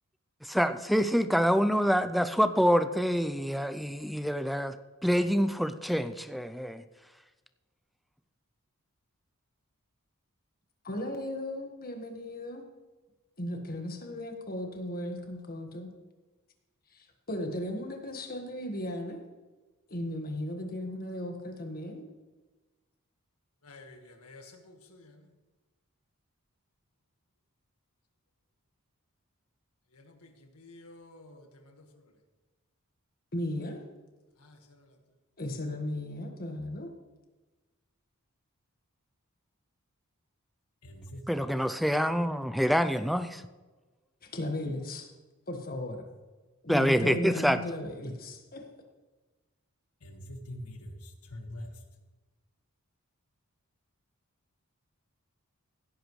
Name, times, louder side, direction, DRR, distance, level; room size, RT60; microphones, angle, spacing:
voice 1, 0.5-4.8 5.0-6.8 41.3-43.4 46.7-47.6, equal, ahead, 0.4 m, -26 dB
voice 2, 10.8-12.6 13.4-15.9 16.9-19.2 19.9-22.0 33.3-33.8 35.4-36.9 44.3-45.1 45.5-46.1 46.6-48.6, left 1 dB, 45° left, 1.6 m, -36 dB
voice 3, 23.6-25.2 29.9-31.9 34.4-34.8 40.8-41.2 50.0-51.7, left 1 dB, 90° left, 1.7 m, -47 dB
16.5 x 10.0 x 3.2 m
head